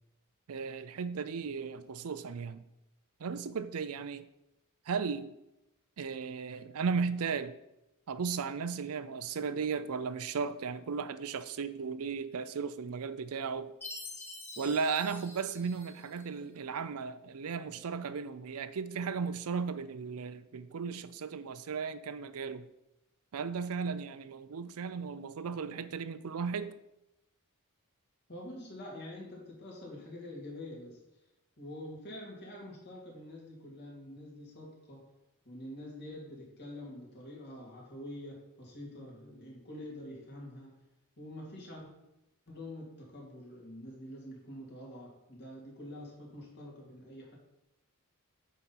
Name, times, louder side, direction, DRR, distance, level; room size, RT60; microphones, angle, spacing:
voice 1, 0.5-2.6 3.2-4.3 4.9-5.3 6.0-7.6 8.1-13.7 14.6-22.7 23.3-26.7, right 5 dB, 70° right, 0.5 m, -35 dB
Chime, 13.8-16.3, left 2 dB, 10° left, 1.2 m, -46 dB
voice 2, 28.3-31.0 31.6-35.1 35.4-40.8 41.2-41.9 42.5-47.4, left 1 dB, 50° left, 2.6 m, -46 dB
8.0 x 4.3 x 5.8 m
head